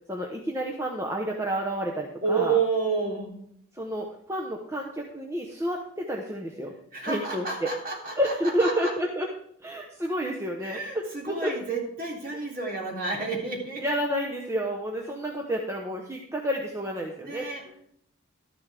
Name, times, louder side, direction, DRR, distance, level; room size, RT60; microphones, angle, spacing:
voice 1, 0.1-2.6 3.7-6.7 7.0-7.7 8.2-9.3 9.6-11.5 12.3-12.4 13.8-17.5, equal, 15° right, 0 dB, 0.9 m, -30 dB
voice 2, 2.2-3.4 6.9-8.9 10.6-13.9 17.2-17.6, right 4 dB, 45° right, -2 dB, 3.2 m, -30 dB
12.5 x 11.0 x 3.5 m, 0.68 s
head